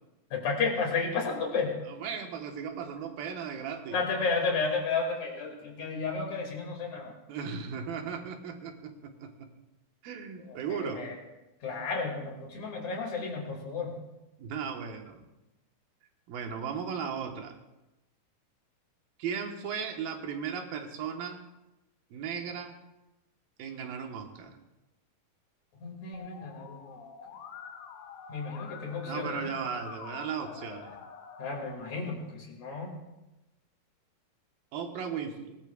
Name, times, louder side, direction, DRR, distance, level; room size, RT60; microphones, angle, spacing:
voice 1, 0.3-1.8 3.9-7.1 10.5-11.2 11.6-14.0 25.8-27.0 28.3-29.5 31.4-32.9, left 4 dB, 55° left, 0 dB, 3.5 m, -32 dB
voice 2, 1.9-4.0 7.3-9.5 10.0-11.1 14.4-15.2 16.3-17.6 19.2-21.4 22.1-22.8 23.6-24.6 29.0-31.0 34.7-35.6, right 6 dB, 90° right, 3 dB, 3.1 m, -36 dB
Musical instrument, 26.1-31.7, left 6 dB, 80° left, 2.9 m, -46 dB
20.5 x 19.0 x 2.4 m, 0.99 s
omnidirectional pair, 4.0 m